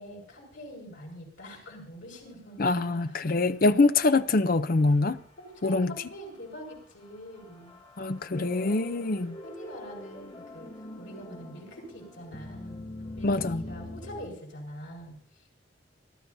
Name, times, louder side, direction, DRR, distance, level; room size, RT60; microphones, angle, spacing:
voice 1, 0.0-3.4 5.4-7.8 8.3-9.1 9.4-10.7 11.0-12.9 13.2-15.4, equal, 85° left, 5.8 m, -44 dB
voice 2, 2.6-5.2 5.6-5.9 8.0-9.4 13.2-13.6, left 3 dB, 50° left, 0.6 m, -24 dB
sound 1, 3.8-5.2 5.6-5.7 6.8-14.3, left 1 dB, 25° left, 1.2 m, -44 dB
27.5 x 12.5 x 2.7 m
head